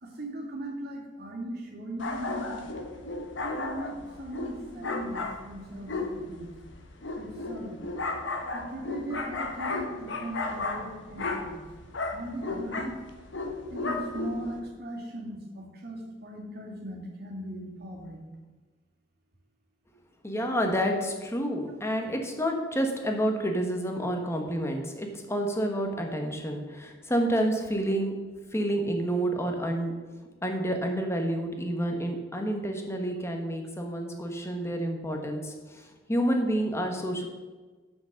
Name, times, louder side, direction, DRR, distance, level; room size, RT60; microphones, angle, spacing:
voice 1, 0.0-2.7 3.6-6.5 7.2-7.8 8.5-11.6 12.1-13.0 13.7-18.2, right 1 dB, 55° right, -1 dB, 2.1 m, -38 dB
sound 1, 2.0-14.6, left 3 dB, 70° left, 1.1 m, -34 dB
voice 2, 20.2-28.1 28.5-29.9 30.4-37.3, right 1 dB, 15° left, 3 dB, 1.2 m, -29 dB
7.7 x 6.2 x 6.4 m, 1.3 s
head